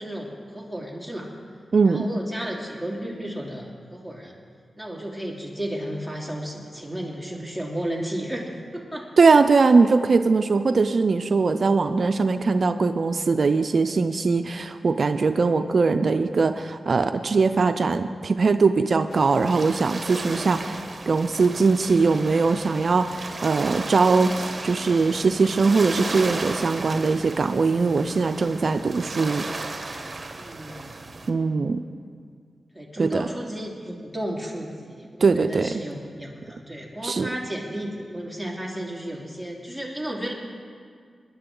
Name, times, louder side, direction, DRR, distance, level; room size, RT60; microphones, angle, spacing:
voice 1, 0.0-1.3 1.8-4.3 4.8-9.1 20.3-20.5 30.3-30.9 32.7-40.3, right 1 dB, 10° left, -2 dB, 2.9 m, -33 dB
voice 2, 1.7-2.0 9.2-20.8 21.1-29.5 31.3-31.8 33.0-33.3 35.2-35.8 37.0-37.3, right 4 dB, 65° right, 9 dB, 0.4 m, -21 dB
sound 1, 19.1-31.3, right 3 dB, 45° right, 1.1 m, -35 dB
21.0 x 10.5 x 3.8 m, 2.1 s
cardioid pair, 55°, 0 cm